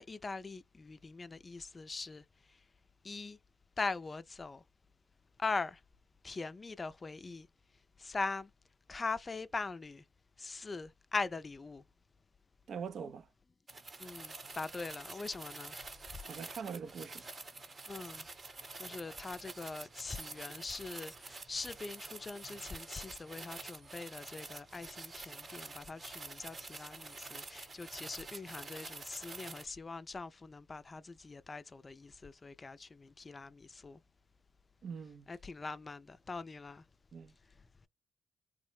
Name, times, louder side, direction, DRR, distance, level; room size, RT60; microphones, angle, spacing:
voice 1, 0.0-2.2 3.0-3.4 3.8-4.6 5.4-5.8 6.2-7.5 8.0-8.5 8.9-10.0 10.4-11.8 14.0-15.7 17.9-18.3 18.8-34.0 35.3-36.8, left 3 dB, 35° left, 0.4 m, -41 dB
voice 2, 12.7-13.3 16.2-17.3 34.8-35.3 37.1-37.3, right 6 dB, 60° right, 0.3 m, -43 dB
sound 1, 13.7-29.6, right 3 dB, 45° right, 0.8 m, -48 dB
3.1 x 2.0 x 3.2 m
hypercardioid pair, 45°, 0 cm